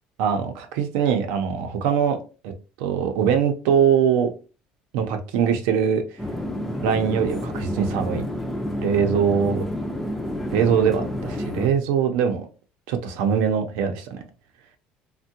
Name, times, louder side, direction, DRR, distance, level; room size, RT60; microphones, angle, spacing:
voice 1, 0.2-2.2 2.4-2.5 2.8-4.3 4.9-6.0 6.8-8.2 8.8-9.7 10.5-12.5 12.9-14.2, right 7 dB, 85° right, 0.5 m, -22 dB
sound 1, 6.2-11.7, equal, 5° left, 0.4 m, -29 dB
3.4 x 2.1 x 2.7 m
cardioid pair, 160°, 3 cm